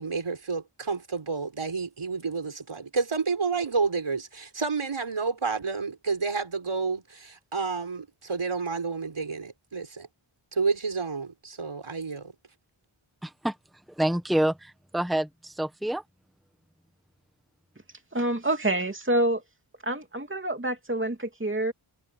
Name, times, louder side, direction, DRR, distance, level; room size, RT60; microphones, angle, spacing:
voice 1, 0.0-10.1 10.5-12.3, right 4 dB, 90° right, 5.4 m, -30 dB
voice 2, 13.2-13.5 14.0-16.0, right 1 dB, ahead, 1.3 m, -27 dB
voice 3, 18.1-19.4 19.8-21.7, right 1 dB, 25° right, 2.9 m, -27 dB
wide cardioid pair, 60°, 48 cm